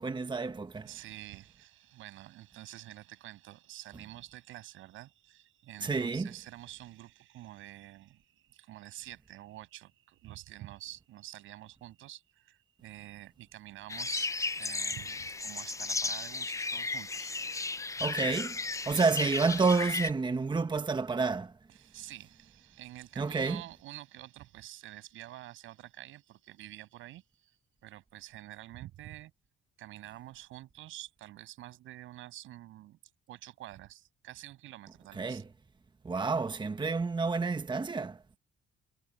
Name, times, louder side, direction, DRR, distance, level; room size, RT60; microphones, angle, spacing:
voice 1, 0.0-0.9 5.8-6.3 18.0-18.6 18.9-21.5 23.2-23.6 35.2-35.4 36.0-38.2, right 4 dB, 25° right, 1.1 m, -29 dB
voice 2, 0.8-14.3 14.6-17.3 18.8-19.0 21.7-29.3 29.8-33.0 33.3-35.4, right 15 dB, 90° right, 7.6 m, -48 dB
sound 1, 13.9-20.1, left 3 dB, 15° left, 0.5 m, -35 dB
cardioid pair, 90°, 20 cm